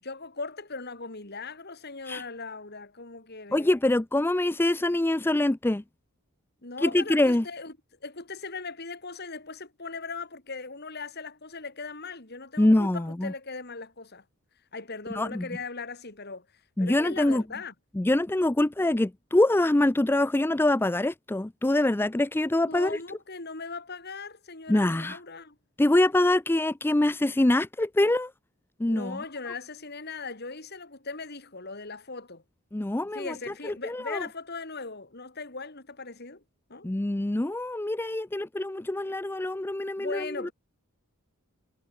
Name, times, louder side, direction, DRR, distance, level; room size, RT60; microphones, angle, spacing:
voice 1, 0.0-3.7 6.6-7.7 8.0-14.2 14.7-16.5 16.8-17.7 22.6-25.6 28.9-32.4 33.1-36.4 36.7-36.9 40.0-40.5, left 4 dB, 50° left, 2.9 m, -39 dB
voice 2, 3.5-5.8 6.8-7.4 12.6-13.3 15.1-15.4 16.8-17.4 18.0-23.0 24.7-25.2 25.8-28.3 28.8-29.2 32.7-33.3 33.8-34.2 36.8-40.5, left 1 dB, 10° left, 0.4 m, -24 dB
head